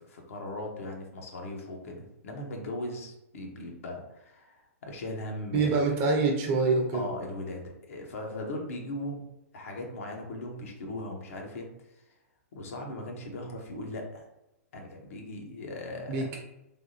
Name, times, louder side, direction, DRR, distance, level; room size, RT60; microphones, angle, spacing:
voice 1, 0.0-5.9 6.9-9.2 9.5-12.0 12.5-14.2 14.7-16.3, left 1 dB, 65° left, 1 dB, 0.9 m, -38 dB
voice 2, 5.5-7.1 16.1-16.4, right 3 dB, 35° right, 1 dB, 0.8 m, -25 dB
3.4 x 2.7 x 2.7 m, 0.91 s
hypercardioid pair, 120°, 8 cm